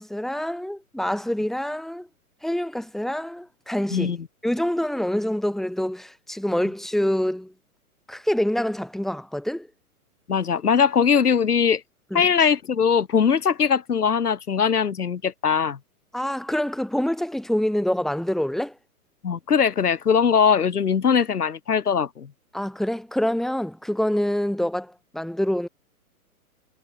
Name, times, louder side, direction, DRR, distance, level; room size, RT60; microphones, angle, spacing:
voice 1, 0.0-2.1 2.4-4.1 4.4-7.5 8.1-9.7 12.1-12.3 16.1-18.7 22.5-25.7, left 1 dB, ahead, 5.0 m, -26 dB
voice 2, 10.3-11.8 12.1-15.8 19.2-22.3, left 7 dB, 85° left, 4.2 m, -21 dB
hypercardioid pair, 140°, 44 cm